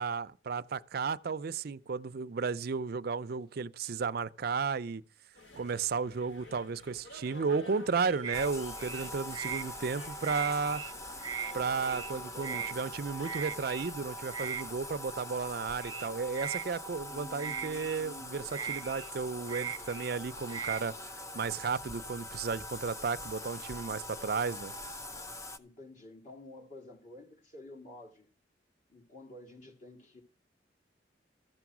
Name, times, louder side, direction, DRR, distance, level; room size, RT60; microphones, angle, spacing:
voice 1, 0.0-5.0 5.5-10.8 11.5-20.9 21.3-24.7, right 5 dB, 60° right, 0.5 m, -34 dB
sound 1, 5.3-13.6, left 1 dB, 85° left, 2.4 m, -52 dB
sound 2, 8.2-8.5 8.8-9.6 10.0-10.9 11.2-11.5 11.8-12.1 12.4-12.7 13.2-13.9 14.3-14.6 15.8-16.7 17.4-18.0 18.5-20.2 20.5-20.8, right 8 dB, 20° right, 0.7 m, -38 dB
Bathtub (filling or washing), 8.3-25.6, left 1 dB, 15° left, 0.6 m, -43 dB
voice 2, 11.8-12.8 17.0-18.6 20.3-20.4 25.6-28.3 28.9-30.2, left 1 dB, 45° left, 2.4 m, -51 dB
13.5 x 7.0 x 6.1 m
head